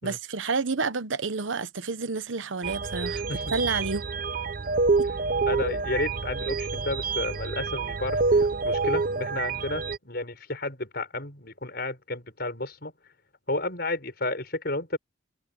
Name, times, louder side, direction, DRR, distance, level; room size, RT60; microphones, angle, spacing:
voice 1, 0.0-3.2 3.5-4.1 5.0-5.1, right 4 dB, 80° right, 1.1 m, -29 dB
sound 1, 2.6-10.0, right 4 dB, 45° right, 0.6 m, -27 dB
voice 2, 5.5-12.9 13.5-15.0, left 2 dB, 55° left, 6.3 m, -32 dB
head